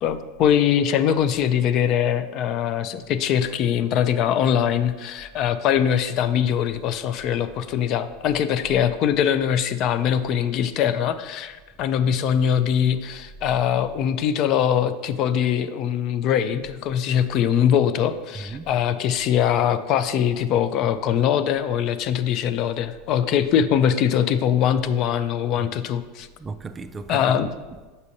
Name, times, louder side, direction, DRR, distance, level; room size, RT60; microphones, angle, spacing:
voice 1, 0.0-26.3 27.1-27.5, left 9 dB, 50° left, 0.4 m, -22 dB
voice 2, 18.3-18.7 25.5-25.7 26.4-27.9, right 3 dB, 20° right, 0.3 m, -36 dB
6.9 x 5.4 x 2.7 m
hypercardioid pair, 90°, 0 cm